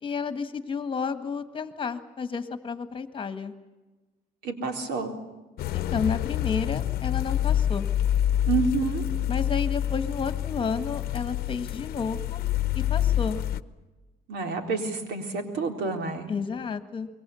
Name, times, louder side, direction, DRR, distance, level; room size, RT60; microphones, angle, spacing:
voice 1, 0.0-3.5 5.7-7.9 9.3-12.4 12.7-13.4 16.3-17.1, left 5 dB, 30° left, 10 dB, 1.7 m, -31 dB
voice 2, 4.4-5.1 8.4-9.0 14.3-16.3, right 4 dB, 85° right, 5 dB, 3.9 m, -28 dB
sound 1, 5.6-13.6, left 11 dB, 65° left, 0.8 m, -27 dB
26.5 x 22.5 x 7.1 m, 1.2 s
cardioid pair, 110°, 17 cm